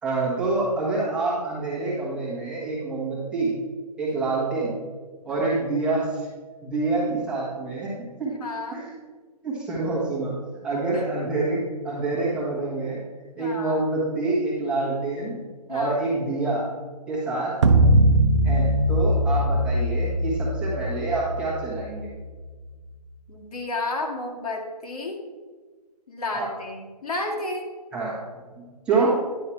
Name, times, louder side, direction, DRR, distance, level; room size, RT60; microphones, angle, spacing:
voice 1, 0.0-3.5 4.0-4.8 5.2-6.3 6.6-8.4 8.7-8.9 9.4-10.4 10.6-13.0 13.3-15.4 15.7-16.7 17.1-17.6 18.4-22.1 26.3-26.5 27.9-28.1 28.6-29.2, right 3 dB, 5° right, -8 dB, 1.2 m, -26 dB
voice 2, 8.4-8.8 10.9-11.0 13.4-13.8 15.7-16.0 17.3-17.5 23.3-25.2 26.1-27.7, left 2 dB, 60° left, 1 dB, 2.0 m, -32 dB
sound 1, 17.6-22.1, right 1 dB, 45° right, 0.8 m, -20 dB
10.0 x 5.6 x 4.5 m, 1.4 s
hypercardioid pair, 170°, 21 cm